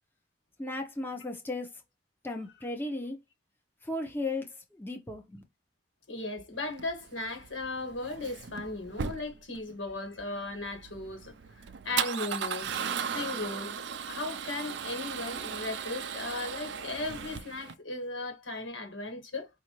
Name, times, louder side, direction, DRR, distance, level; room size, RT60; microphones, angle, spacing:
voice 1, 0.6-1.7 2.2-3.2 3.8-5.4, left 2 dB, 10° left, 0.8 m, -35 dB
voice 2, 6.1-11.3 11.8-12.7 13.0-19.5, left 2 dB, 90° left, 1.7 m, -37 dB
Male speech man speaking / Car / Engine starting, 6.7-17.7, right 7 dB, 65° right, 0.5 m, -37 dB
5.2 x 2.6 x 3.0 m
head